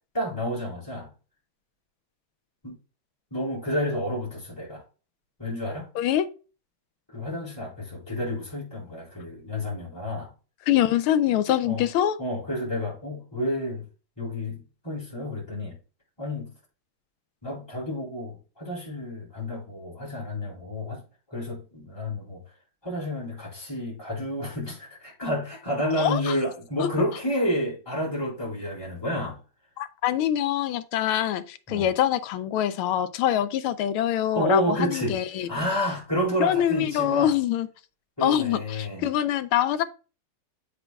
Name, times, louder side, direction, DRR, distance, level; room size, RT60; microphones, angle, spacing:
voice 1, 0.1-1.1 2.6-2.8 3.3-4.8 5.4-5.9 7.1-10.3 11.6-11.9 12.2-13.9 14.2-15.7 16.2-16.5 17.4-21.0 21.3-22.4 22.8-29.4 31.7-31.9 34.3-35.2 35.5-37.3 38.2-39.1, equal, 10° left, 3.8 m, -30 dB
voice 2, 6.0-6.3 10.7-12.2 26.0-26.4 26.8-26.9 29.8-35.5 36.4-37.7 38.2-39.8, left 11 dB, 85° left, 1.5 m, -24 dB
8.0 x 6.0 x 2.3 m
omnidirectional pair, 2.3 m